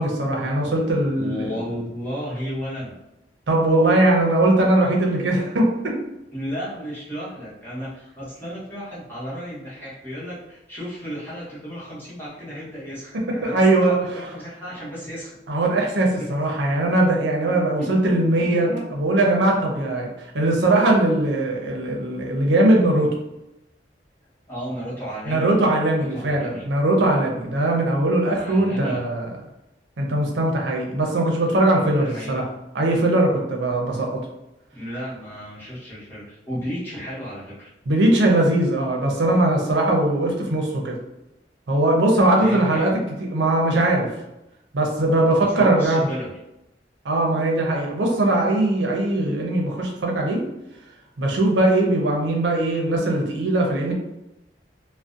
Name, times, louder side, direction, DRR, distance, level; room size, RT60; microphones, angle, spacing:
voice 1, 0.0-1.5 3.5-6.0 13.5-14.0 15.5-23.1 25.3-29.3 30.0-32.4 32.7-34.2 37.9-41.0 41.7-42.9 43.2-44.1 44.7-46.1 47.0-50.4 51.2-53.9, right 1 dB, 90° right, 0 dB, 0.5 m, -20 dB
voice 2, 1.1-2.9 6.3-15.4 16.2-16.3 17.5-18.9 24.5-25.5 26.0-26.6 28.3-29.0 31.8-32.4 34.7-37.7 42.3-42.9 45.4-46.3, equal, 10° left, -10 dB, 0.9 m, -33 dB
2.6 x 2.0 x 2.4 m, 0.91 s
head